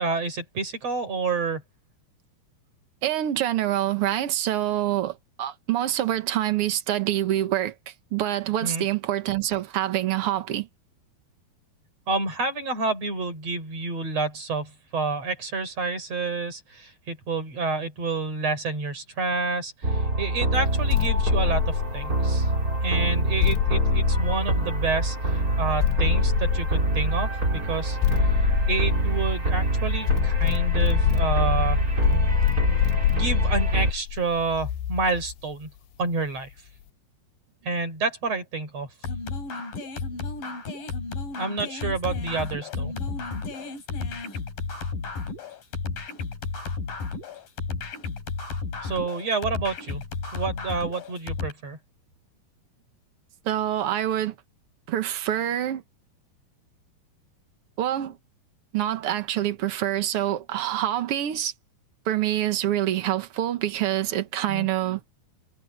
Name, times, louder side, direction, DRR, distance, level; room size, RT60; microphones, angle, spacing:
voice 1, 0.0-1.6 8.6-8.8 12.1-22.5 22.8-31.8 33.1-35.7 36.0-36.5 37.6-38.9 41.4-42.9 48.8-50.0 50.3-51.8 64.5-64.7, right 4 dB, 45° right, 6.0 m, -29 dB
voice 2, 3.0-10.7 53.4-54.3 54.9-55.8 57.8-58.2 58.7-61.5 62.0-65.0, right 12 dB, 70° right, 1.4 m, -26 dB
sound 1, 19.8-33.9, right 2 dB, 20° right, 5.1 m, -25 dB
sound 2, 20.9-22.4 23.4-25.0 25.8-27.2 28.0-29.6 30.1-35.3, left 12 dB, 85° left, 2.9 m, -25 dB
sound 3, 39.0-51.5, left 4 dB, 65° left, 6.4 m, -33 dB
omnidirectional pair, 4.3 m